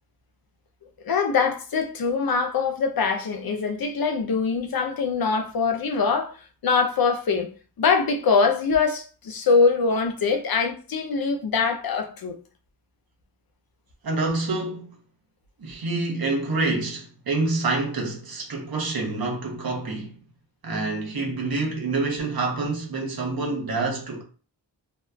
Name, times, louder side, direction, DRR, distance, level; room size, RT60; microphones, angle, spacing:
voice 1, 1.0-6.4 6.6-7.5 7.8-12.4, left 5 dB, 60° left, 0.5 m, -23 dB
voice 2, 14.0-14.9 15.6-20.2 20.6-24.2, right 3 dB, 65° right, 0.8 m, -27 dB
2.7 x 2.3 x 2.2 m
wide cardioid pair, 60°, 40 cm